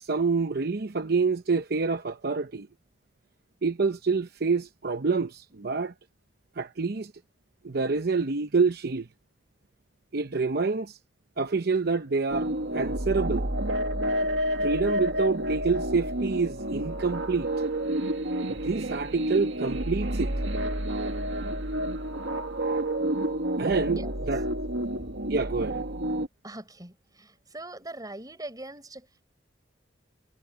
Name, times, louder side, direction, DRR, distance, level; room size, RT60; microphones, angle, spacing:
voice 1, 0.0-2.7 3.6-5.9 6.6-7.1 7.6-9.1 10.1-11.0 11.4-12.5 12.7-13.5 14.6-17.5 18.5-20.3 23.6-24.0 24.3-24.4 25.3-25.8, right 4 dB, 60° right, 0.8 m, -27 dB
sound 1, 12.3-26.3, right 1 dB, 80° right, 2.0 m, -29 dB
voice 2, 24.4-25.3 26.4-29.2, right 2 dB, 20° right, 5.0 m, -43 dB
head